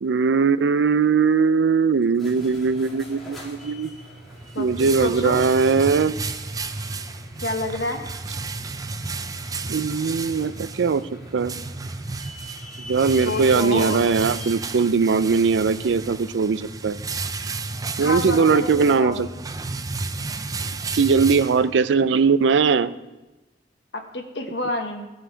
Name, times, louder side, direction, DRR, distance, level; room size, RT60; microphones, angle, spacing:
voice 1, 0.0-3.9 4.6-6.2 9.7-11.0 11.3-11.5 12.8-17.0 18.0-19.3 20.9-22.9, right 5 dB, 85° right, 15 dB, 0.4 m, -20 dB
sound 1, 2.0-16.3, equal, ahead, 3.3 m, -44 dB
sound 2, 4.2-22.0, right 3 dB, 20° right, 0.4 m, -32 dB
voice 2, 4.5-5.4 7.4-8.0 13.2-14.0 18.0-19.3 23.9-25.1, left 2 dB, 70° left, 4 dB, 1.3 m, -28 dB
15.5 x 6.3 x 4.6 m, 1.1 s
head